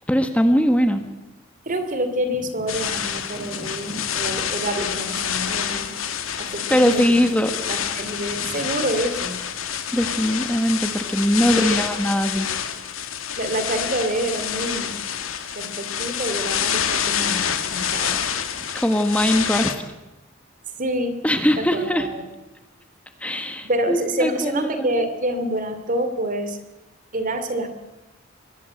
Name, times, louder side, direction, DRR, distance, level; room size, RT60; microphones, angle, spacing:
voice 1, 0.1-1.0 3.3-4.4 6.7-7.5 8.4-8.5 9.9-12.5 18.7-19.8 21.2-22.1 23.2-24.9, equal, 5° left, 7 dB, 1.3 m, -21 dB
voice 2, 1.7-5.9 6.4-7.0 7.7-9.4 11.5-11.9 13.4-15.0 15.5-17.4 17.7-18.2 20.8-21.2 21.6-22.2 23.6-26.6 27.1-27.7, right 1 dB, 40° right, 9 dB, 2.8 m, -27 dB
sound 1, 2.7-19.8, left 8 dB, 85° left, 2.2 m, -27 dB
24.5 x 21.5 x 7.9 m, 0.99 s
head